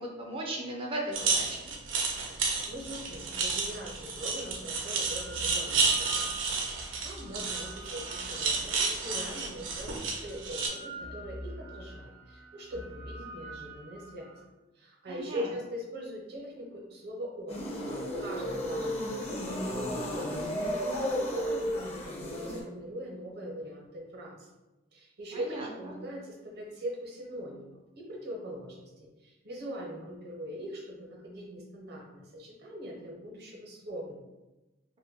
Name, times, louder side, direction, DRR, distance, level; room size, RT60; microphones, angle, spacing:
voice 1, 0.0-1.7 15.1-15.5 25.3-25.9, right 1 dB, 30° right, -1 dB, 0.4 m, -37 dB
sound 1, 1.1-10.7, right 4 dB, 90° right, 0.5 m, -31 dB
voice 2, 2.6-6.3 7.0-14.3 14.7-17.6 18.2-20.5 20.9-24.5 24.9-34.2, equal, 60° right, -1 dB, 0.7 m, -41 dB
sound 2, 5.0-9.0 9.7-14.4, right 1 dB, 90° left, 0.6 m, -46 dB
sound 3, 17.5-22.6, equal, 35° left, 0.6 m, -33 dB
2.5 x 2.1 x 3.5 m, 1.1 s
head